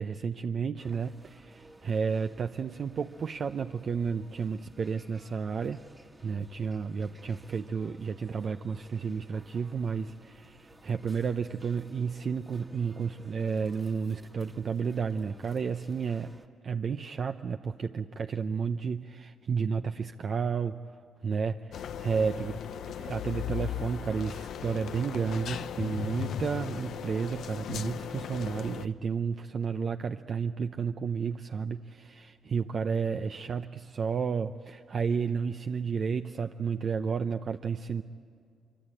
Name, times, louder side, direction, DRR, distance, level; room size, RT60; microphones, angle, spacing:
voice 1, 0.0-5.8 6.2-16.3 16.6-20.8 21.2-22.6 23.0-38.0, right 6 dB, 50° right, 7 dB, 0.6 m, -32 dB
sound 1, 0.8-16.5, right 2 dB, 20° right, 1.6 m, -56 dB
sound 2, 21.7-28.9, left 9 dB, 70° left, 0.7 m, -37 dB
25.0 x 24.0 x 8.9 m, 2.3 s
cardioid pair, 90°, 0 cm